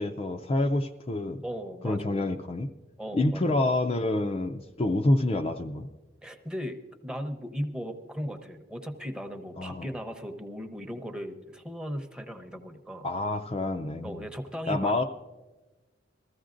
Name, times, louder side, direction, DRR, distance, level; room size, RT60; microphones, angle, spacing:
voice 1, 0.0-1.4 1.8-2.7 3.1-5.9 9.6-9.9 13.0-14.2 14.7-15.0, left 2 dB, 30° left, 4 dB, 0.4 m, -27 dB
voice 2, 1.4-2.3 3.0-3.6 6.2-6.8 7.0-13.1 14.0-14.9, equal, 5° right, 4 dB, 0.8 m, -37 dB
20.5 x 14.5 x 2.5 m, 1.2 s
head